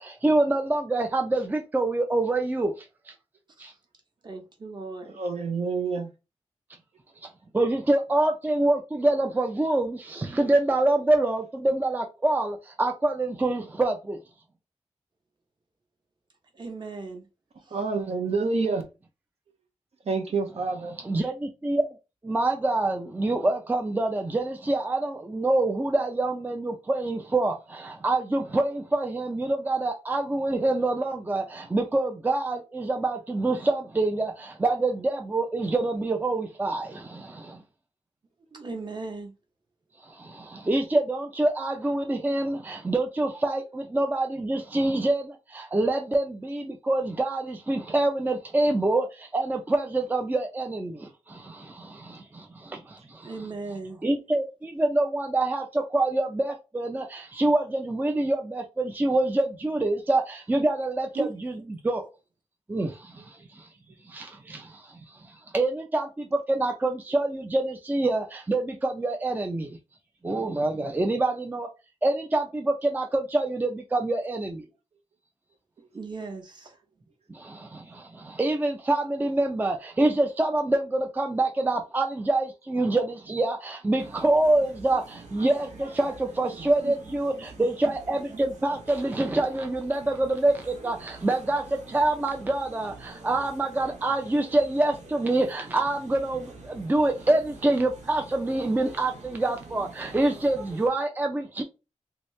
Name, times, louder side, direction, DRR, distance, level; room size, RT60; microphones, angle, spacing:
voice 1, 0.0-3.1 3.6-3.7 7.2-14.2 21.0-21.9 22.2-37.6 40.0-53.3 54.0-62.1 62.7-63.7 64.1-69.8 70.2-71.7 72.0-74.6 77.3-101.6, right 2 dB, 15° right, 0.4 m, -26 dB
voice 2, 4.2-5.2 16.5-17.3 38.5-39.3 53.2-54.0 61.1-61.3 75.9-76.8, right 4 dB, 40° right, 0.9 m, -37 dB
voice 3, 5.2-6.1 17.7-18.8 20.1-21.0 86.6-86.9, right 4 dB, 65° right, 0.6 m, -28 dB
sound 1, 84.0-100.9, right 3 dB, 90° right, 0.9 m, -46 dB
2.9 x 2.7 x 3.1 m
wide cardioid pair, 115°, 12 cm